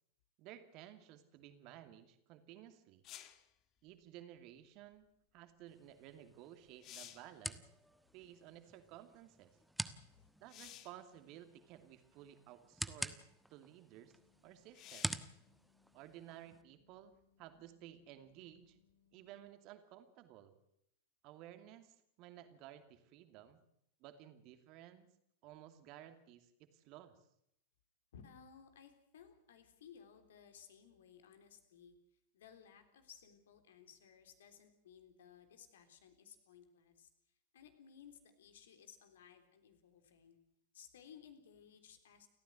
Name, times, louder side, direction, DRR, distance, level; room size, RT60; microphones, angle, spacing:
voice 1, 0.4-3.0 3.8-7.7 8.1-9.5 10.4-14.1 14.4-15.2 15.9-18.8 19.1-20.5 21.2-23.6 24.0-25.1 25.4-27.1, right 12 dB, 40° right, 8 dB, 2.6 m, -56 dB
sound 1, 3.0-3.5 6.1-6.2 6.6-7.4 10.5-11.0 12.0-12.1 14.7-15.3 18.9-19.0, left 12 dB, 35° left, 1.8 m, -54 dB
sound 2, 5.7-16.6, right 1 dB, ahead, 1.3 m, -48 dB
voice 2, 9.9-10.3 28.1-40.4 40.7-42.3, left 7 dB, 60° left, 8 dB, 3.6 m, -60 dB
sound 3, 14.0-19.5, left 8 dB, 85° left, 5.0 m, -75 dB
29.5 x 14.5 x 7.9 m, 0.76 s
figure-of-eight pair, 90°, 0 cm